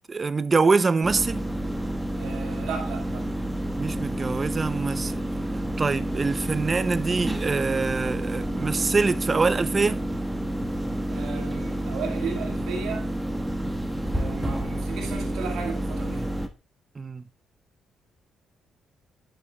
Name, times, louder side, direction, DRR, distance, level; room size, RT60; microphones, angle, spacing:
voice 1, 0.1-1.5 3.8-5.2 5.5-10.0 17.0-17.2, right 4 dB, 30° right, 0.6 m, -25 dB
sound 1, 1.0-16.5, right 1 dB, 5° right, 1.3 m, -29 dB
voice 2, 2.2-3.3 11.1-13.1 14.1-16.3, right 6 dB, 85° right, 2.2 m, -35 dB
10.5 x 6.8 x 2.3 m
cardioid pair, 90°, 0 cm